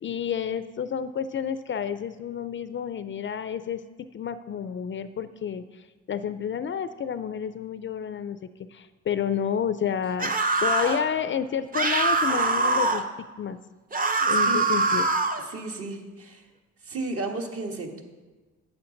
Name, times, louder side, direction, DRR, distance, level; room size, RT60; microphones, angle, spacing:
voice 1, 0.0-3.8 4.1-8.4 8.7-10.4 10.6-13.0 13.4-13.6 14.2-15.1, left 8 dB, 40° left, 13 dB, 0.4 m, -30 dB
sound 1, 10.2-11.0 11.7-13.0 13.9-15.4, right 3 dB, 30° right, 0.8 m, -23 dB
voice 2, 14.3-14.6 15.4-16.4 16.8-18.0, right 2 dB, 50° right, 2 dB, 1.5 m, -33 dB
10.5 x 8.1 x 3.9 m, 1.3 s
cardioid pair, 90°, 30 cm